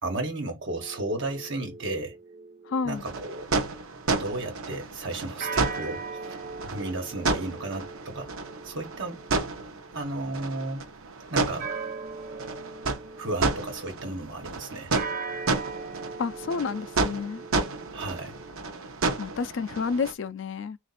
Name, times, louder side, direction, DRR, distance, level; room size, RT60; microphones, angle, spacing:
voice 1, 0.0-2.2 2.8-3.5 4.2-8.3 8.6-9.2 9.9-10.8 11.3-11.7 13.2-14.9 17.9-18.4, right 2 dB, 60° right, 1.4 m, -34 dB
sound 1, 0.7-4.2 5.4-10.3 11.6-14.0 14.9-18.5, right 4 dB, 40° right, 0.8 m, -40 dB
voice 2, 2.6-3.0 16.2-17.4 19.2-20.8, left 5 dB, 60° left, 0.3 m, -30 dB
sound 2, 2.9-20.1, right 3 dB, 75° right, 0.7 m, -31 dB
3.3 x 2.5 x 4.1 m
head